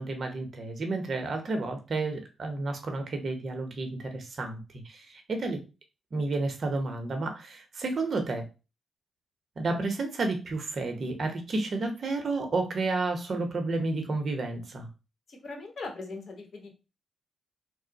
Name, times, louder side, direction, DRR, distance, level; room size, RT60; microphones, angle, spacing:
voice 1, 0.0-4.6 4.8-5.6 6.1-8.5 9.6-14.9, right 3 dB, 55° right, 5 dB, 0.7 m, -31 dB
voice 2, 15.3-16.7, left 3 dB, 50° left, 3 dB, 1.1 m, -40 dB
3.3 x 2.1 x 3.9 m, 0.29 s
cardioid pair, 80°, 0 cm